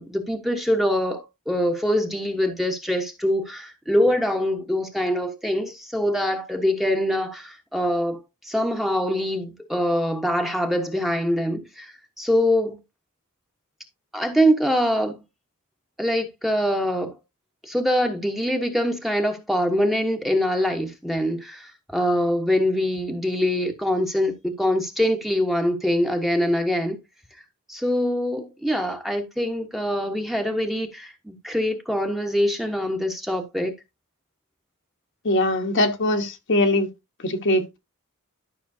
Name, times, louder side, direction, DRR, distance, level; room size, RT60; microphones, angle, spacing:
voice 1, 0.0-12.8 14.1-15.2 16.0-17.1 17.6-27.0 27.7-33.7, equal, ahead, 1.1 m, -24 dB
voice 2, 35.2-36.9 37.2-37.8, left 1 dB, 55° left, 1.2 m, -21 dB
12.0 x 5.9 x 2.7 m
head